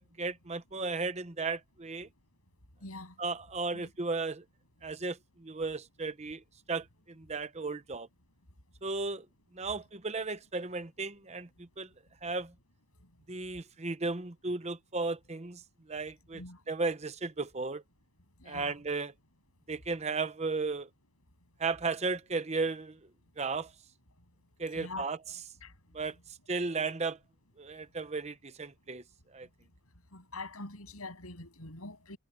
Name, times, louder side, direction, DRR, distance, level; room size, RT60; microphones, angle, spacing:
voice 1, 0.0-2.1 3.2-4.4 4.8-6.4 6.7-8.1 8.8-9.3 9.5-11.9 12.2-12.5 13.3-15.6 15.9-17.8 18.5-19.1 19.7-20.9 21.6-23.0 23.4-23.7 24.6-25.2 25.9-26.2 26.5-27.2 27.6-29.0 29.3-29.5, right 3 dB, 30° right, 0.8 m, -35 dB
voice 2, 2.8-3.1 3.7-3.9 13.0-13.1 16.3-16.6 18.4-18.7 24.7-25.1 25.6-25.7 30.1-32.2, left 2 dB, 80° left, 7.9 m, -44 dB
head